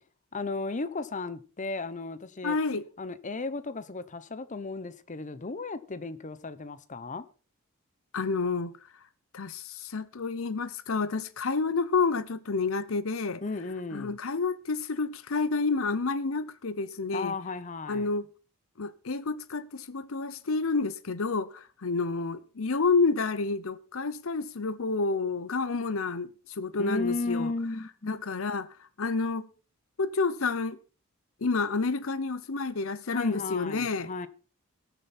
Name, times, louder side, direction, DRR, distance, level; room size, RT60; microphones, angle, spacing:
voice 1, 0.3-2.6 3.0-7.3 13.4-14.2 17.1-18.1 26.8-28.2 33.1-34.3, left 3 dB, 35° left, 0.8 m, -35 dB
voice 2, 2.4-2.8 8.1-8.7 9.3-13.4 13.9-17.3 17.9-18.3 18.8-27.5 28.1-28.7 29.0-29.5 30.0-30.8 31.4-34.1, left 4 dB, 65° left, 0.8 m, -29 dB
19.5 x 6.9 x 4.2 m
head